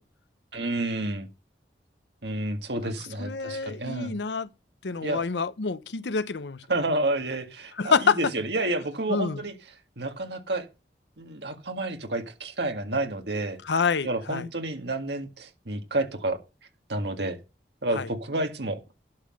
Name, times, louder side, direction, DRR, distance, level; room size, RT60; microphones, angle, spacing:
voice 1, 0.5-1.3 2.2-4.2 5.0-5.2 6.7-9.5 10.0-10.7 11.2-13.6 14.0-16.4 16.9-17.4 17.8-18.8, right 2 dB, 75° right, 1.8 m, -30 dB
voice 2, 3.2-4.5 4.8-6.6 7.8-8.2 9.1-9.4 13.7-14.4 17.9-18.1, left 5 dB, 80° left, 0.7 m, -27 dB
11.5 x 5.8 x 6.4 m
head